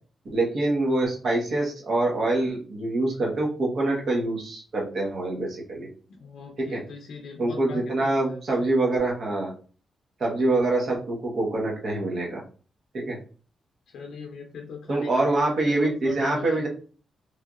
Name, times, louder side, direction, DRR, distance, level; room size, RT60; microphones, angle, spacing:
voice 1, 0.3-5.9 6.7-6.8 7.4-9.5 10.2-12.4 12.9-13.2 14.9-16.7, right 2 dB, 55° right, -2 dB, 1.1 m, -25 dB
voice 2, 6.1-8.4 13.9-15.4 15.6-16.6, left 4 dB, 85° left, 1 dB, 0.4 m, -41 dB
3.2 x 2.7 x 2.4 m, 0.40 s
cardioid pair, 115°, 0 cm